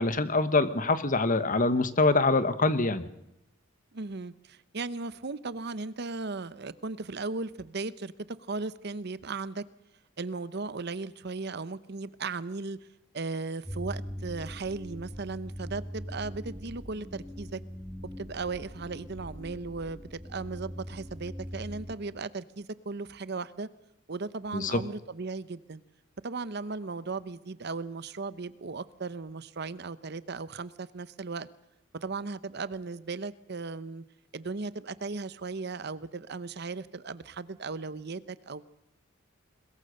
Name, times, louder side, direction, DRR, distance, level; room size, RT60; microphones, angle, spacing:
voice 1, 0.0-3.0 24.5-24.8, left 3 dB, 40° left, 12 dB, 1.3 m, -25 dB
voice 2, 3.9-9.6 10.2-12.8 13.1-17.6 18.2-23.7 24.1-25.8 26.2-31.5 32.0-34.0 34.3-38.6, right 3 dB, 55° right, 16 dB, 0.8 m, -36 dB
sound 1, 13.6-21.9, equal, ahead, 1.9 m, -41 dB
21.5 x 21.5 x 6.5 m, 0.84 s
head